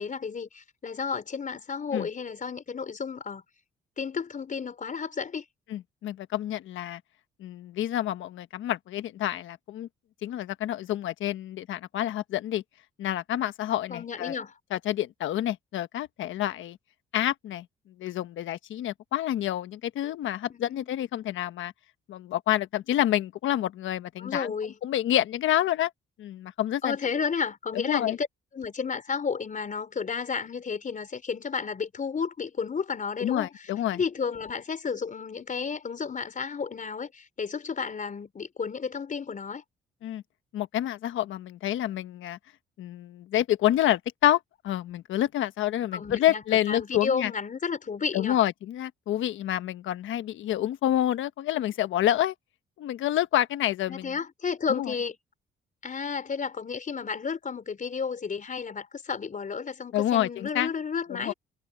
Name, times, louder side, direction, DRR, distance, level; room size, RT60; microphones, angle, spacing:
voice 1, 0.0-3.4 4.0-5.4 13.9-14.5 20.5-20.9 24.2-24.8 26.8-28.3 28.5-39.6 45.9-48.4 53.9-55.2 55.8-61.3, left 5 dB, 40° left, 4.9 m, -32 dB
voice 2, 5.7-7.0 7.4-9.9 10.2-12.6 13.0-14.4 14.7-16.8 17.1-17.6 18.0-21.7 22.1-24.5 24.8-25.9 26.2-27.0 27.7-28.2 33.2-34.0 40.0-40.2 40.5-42.4 42.8-47.3 48.1-52.3 52.8-54.1 54.7-54.9 59.9-60.7 61.1-61.3, left 12 dB, 80° left, 1.3 m, -28 dB
cardioid pair, 90°, 20 cm